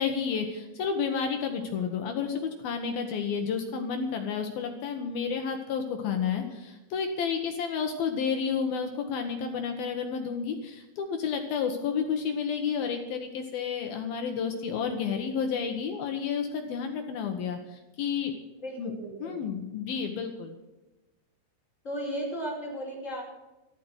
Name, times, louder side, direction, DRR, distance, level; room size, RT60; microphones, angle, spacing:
voice 1, 0.0-18.3 18.8-18.9 19.2-20.6, left 6 dB, 70° left, 5 dB, 2.5 m, -31 dB
voice 2, 18.6-19.4 21.8-23.2, right 1 dB, 15° left, -3 dB, 4.9 m, -35 dB
14.0 x 12.5 x 6.3 m, 1.1 s
omnidirectional pair, 5.6 m